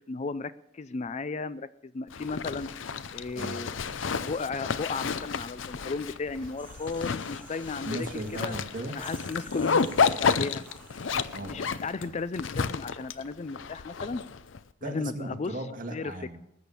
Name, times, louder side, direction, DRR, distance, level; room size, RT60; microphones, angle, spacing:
voice 1, 0.0-2.7 3.1-3.7 4.3-8.5 8.9-10.6 11.4-14.2 14.8-15.5 15.9-16.1, left 4 dB, 35° left, 15 dB, 0.4 m, -35 dB
Zipper (clothing), 2.1-14.6, left 5 dB, 85° left, 0.6 m, -31 dB
sound 1, 2.5-12.3, equal, 5° left, 2.7 m, -55 dB
voice 2, 3.4-4.2 7.8-9.0 11.3-12.2 14.8-16.4, right 1 dB, 45° right, 2 dB, 1.9 m, -38 dB
sound 2, 6.6-8.6 9.0-11.3, right 3 dB, 10° right, 1.5 m, -53 dB
19.5 x 7.1 x 7.0 m, 0.80 s
head